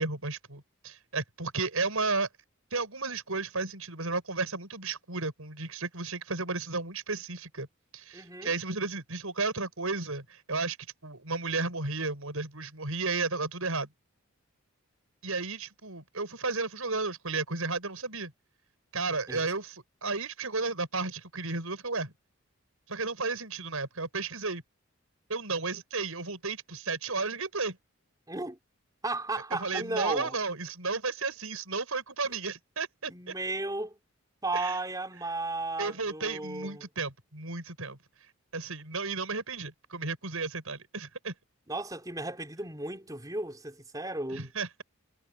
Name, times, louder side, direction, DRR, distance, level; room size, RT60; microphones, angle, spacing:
voice 1, 0.0-2.3 2.7-7.7 7.9-10.8 11.0-13.9 15.2-18.3 18.9-22.1 22.9-24.6 25.3-27.8 29.5-33.3 34.5-34.8 35.8-38.0 38.5-41.3 44.3-44.8, right 3 dB, 75° right, 6.0 m, -33 dB
voice 2, 8.1-8.5 19.3-19.4 28.3-28.6 29.0-30.4 33.1-34.0 34.4-36.8 41.7-44.5, right 2 dB, 15° right, 4.3 m, -34 dB
head